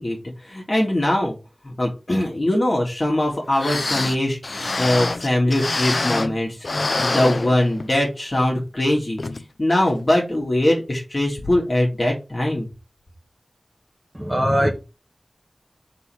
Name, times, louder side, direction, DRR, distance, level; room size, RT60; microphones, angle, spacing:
voice 1, 0.0-1.3 1.6-6.6 7.0-9.2 9.6-12.7, left 1 dB, 40° left, 2.2 m, -21 dB
sound 1, 3.3-3.4 3.6-6.4 6.6-8.0 8.4-8.5 9.2-9.4 9.9-10.0, left 2 dB, 60° left, 0.5 m, -25 dB
voice 2, 14.1-14.7, equal, 5° right, 1.4 m, -20 dB
5.6 x 3.9 x 5.6 m
wide cardioid pair, 60°, 0 cm